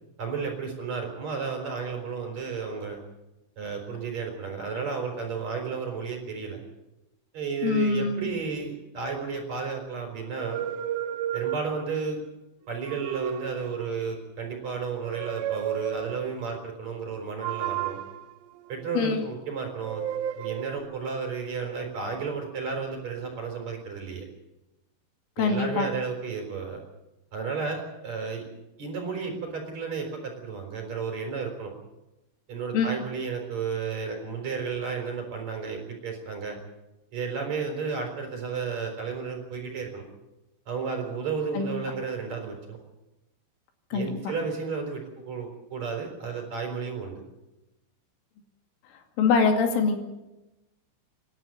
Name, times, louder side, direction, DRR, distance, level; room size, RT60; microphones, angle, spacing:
voice 1, 0.2-3.0 3.6-6.6 7.3-10.6 11.3-12.2 12.7-18.0 18.7-20.0 20.3-24.2 25.4-26.8 27.3-28.5 28.8-31.7 32.5-36.6 37.1-40.0 40.7-42.8 43.9-47.2, right 5 dB, 35° right, 3 dB, 4.8 m, -32 dB
voice 2, 7.6-8.3 19.0-19.2 25.4-25.9 32.7-32.9 41.5-41.7 43.9-44.1 49.2-50.0, left 5 dB, 80° left, 4 dB, 4.8 m, -23 dB
sound 1, 10.3-12.1 12.7-14.0 15.0-16.3 17.4-19.3 19.8-20.8, right 10 dB, 75° right, 2.1 m, -33 dB
26.5 x 11.5 x 9.4 m, 0.99 s
omnidirectional pair, 5.6 m